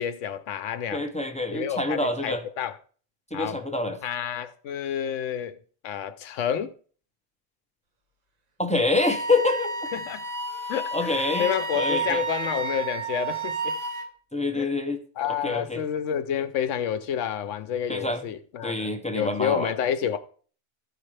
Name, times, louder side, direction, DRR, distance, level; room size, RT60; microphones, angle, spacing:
voice 1, 0.0-1.0 1.5-2.7 3.3-3.6 4.0-5.6 5.8-6.7 9.9-10.2 10.7-13.8 14.5-14.7 15.2-20.2, left 9 dB, 80° left, 1.0 m, -29 dB
voice 2, 0.9-2.4 3.3-4.0 8.6-9.9 10.9-12.2 14.3-15.0 15.4-15.8 17.9-18.3 18.6-19.7, left 2 dB, 10° left, 0.4 m, -26 dB
Wind instrument woodwind instrument, 9.0-14.1, right 3 dB, 40° right, 0.7 m, -31 dB
13.5 x 4.9 x 3.3 m
omnidirectional pair, 1.3 m